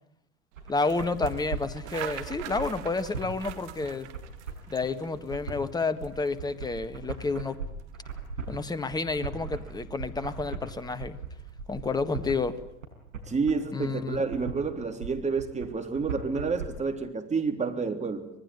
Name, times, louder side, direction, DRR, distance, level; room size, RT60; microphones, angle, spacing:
sound 1, 0.5-12.8, right 11 dB, 60° right, 2.3 m, -45 dB
sound 2, 0.6-16.7, right 6 dB, 75° right, 5.3 m, -38 dB
voice 1, 0.7-4.1 4.7-7.6 8.5-11.2 11.7-12.6 13.7-14.2, left 3 dB, 10° left, 12 dB, 1.6 m, -30 dB
voice 2, 13.3-18.3, right 4 dB, 15° right, 6 dB, 3.4 m, -29 dB
26.0 x 20.0 x 9.8 m, 0.78 s
figure-of-eight pair, 80°, 40 cm